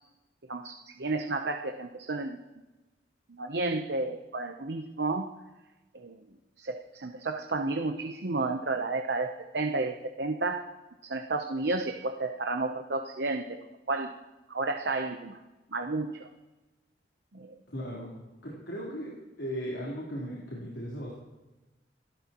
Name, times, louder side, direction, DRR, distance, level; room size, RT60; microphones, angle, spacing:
voice 1, 0.5-2.4 3.3-5.3 5.9-6.2 6.6-10.7 11.0-13.5 13.9-14.1 14.5-15.4 15.7-16.3 17.3-17.5, right 3 dB, 70° right, 5 dB, 0.9 m, -32 dB
voice 2, 17.7-18.1 18.4-19.1 19.4-21.1, equal, 85° left, -5 dB, 3.8 m, -37 dB
28.0 x 13.0 x 3.1 m, 1.1 s
head